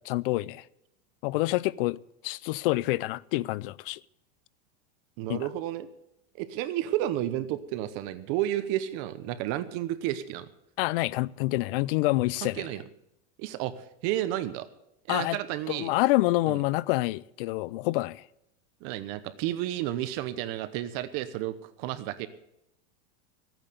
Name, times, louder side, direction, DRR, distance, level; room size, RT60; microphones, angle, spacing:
voice 1, 0.1-0.6 1.2-2.0 2.2-4.0 5.3-5.5 10.8-12.6 15.1-15.4 15.7-18.2, left 19 dB, 60° left, 0.5 m, -27 dB
voice 2, 5.2-5.9 6.4-10.5 12.4-12.8 13.4-14.7 15.1-15.9 16.5-16.6 18.8-22.3, right 13 dB, 45° right, 0.9 m, -31 dB
15.0 x 9.0 x 6.8 m
supercardioid pair, 155°, 32 cm